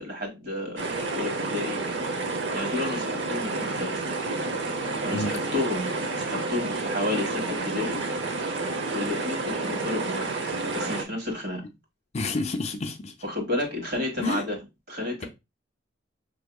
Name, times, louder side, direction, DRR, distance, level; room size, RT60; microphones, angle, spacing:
voice 1, 0.0-1.8 2.5-4.2 5.0-8.0 8.9-10.3 10.7-11.6 13.2-14.6 14.9-15.3, left 2 dB, 55° right, 1.4 m, -31 dB
sound 1, 0.8-11.0, right 3 dB, 70° right, 0.7 m, -30 dB
voice 2, 12.1-13.1 14.2-14.4, left 2 dB, 35° left, 0.4 m, -29 dB
5.6 x 2.7 x 2.3 m
head